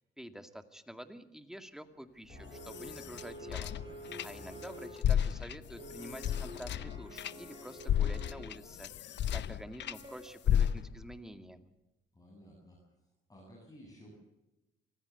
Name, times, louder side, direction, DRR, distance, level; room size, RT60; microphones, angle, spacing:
voice 1, 0.0-3.7 4.2-11.7, equal, ahead, 8 dB, 2.1 m, -48 dB
sound 1, 2.3-4.7 5.0-10.0 10.5-11.1, left 10 dB, 65° left, 0.8 m, -33 dB
sound 2, 2.3-5.0 5.8-8.4 9.8-10.3, equal, 25° right, 8.0 m, -48 dB
voice 2, 12.1-13.0 13.3-14.1, equal, 20° left, -2 dB, 7.6 m, -55 dB
25.5 x 16.5 x 8.0 m, 0.96 s
cardioid pair, 90°, 20 cm